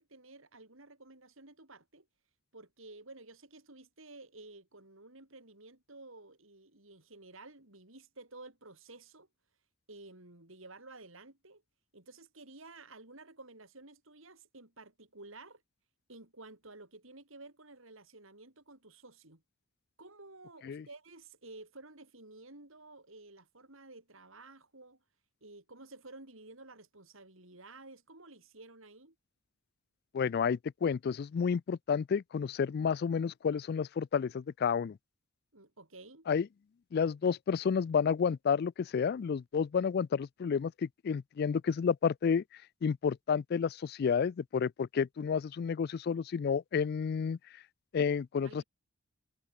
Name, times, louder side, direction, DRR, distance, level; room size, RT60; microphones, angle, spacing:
voice 1, 0.0-2.1 2.5-9.3 9.9-11.6 11.9-15.6 16.1-19.4 20.0-25.0 25.4-29.1 35.5-36.3 48.4-48.6, right 2 dB, 65° right, 4.7 m, -53 dB
voice 2, 30.1-35.0 36.3-36.5 36.9-42.4 42.8-47.4 47.9-48.6, left 6 dB, 45° left, 0.3 m, -30 dB
head